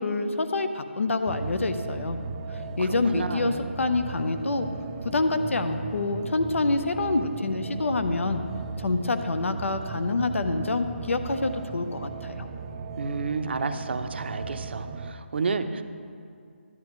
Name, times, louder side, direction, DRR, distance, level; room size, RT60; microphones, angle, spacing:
voice 1, 0.0-2.2 2.5-4.7 5.0-8.4 8.8-12.5, left 3 dB, 75° left, 8 dB, 0.7 m, -27 dB
sound 1, 1.3-15.1, right 4 dB, 20° right, 0.4 m, -37 dB
voice 2, 2.8-3.7 13.0-15.8, right 4 dB, 55° right, 8 dB, 0.7 m, -31 dB
13.5 x 11.0 x 3.1 m, 2.3 s
figure-of-eight pair, 160°, 7 cm